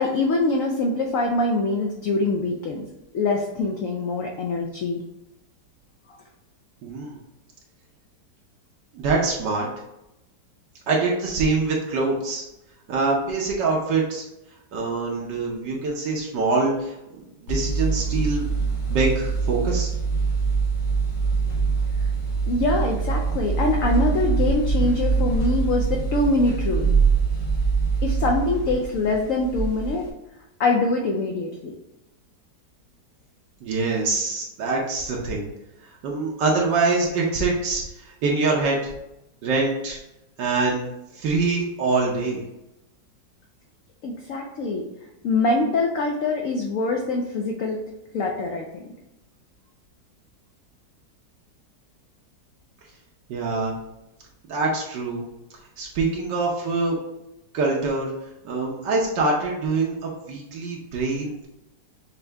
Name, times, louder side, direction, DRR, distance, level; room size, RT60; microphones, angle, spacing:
voice 1, 0.0-2.8 3.1-5.0 22.5-26.9 28.0-30.1 30.6-31.7 44.0-44.8 45.2-47.8 48.1-48.8, left 2 dB, 70° left, 1 dB, 0.8 m, -24 dB
voice 2, 6.8-7.2 8.9-9.7 10.9-12.5 12.9-14.2 14.7-18.5 18.9-19.9 33.6-35.4 35.8-38.9 39.4-40.0 40.4-40.8 41.1-42.4 53.3-53.8 54.5-55.2 55.8-57.0 57.5-58.1 58.4-61.5, right 3 dB, 75° right, -2 dB, 1.4 m, -24 dB
sound 1, 17.5-30.1, right 5 dB, 90° left, 1.8 m, -24 dB
5.6 x 2.6 x 3.3 m, 0.92 s
omnidirectional pair, 1.9 m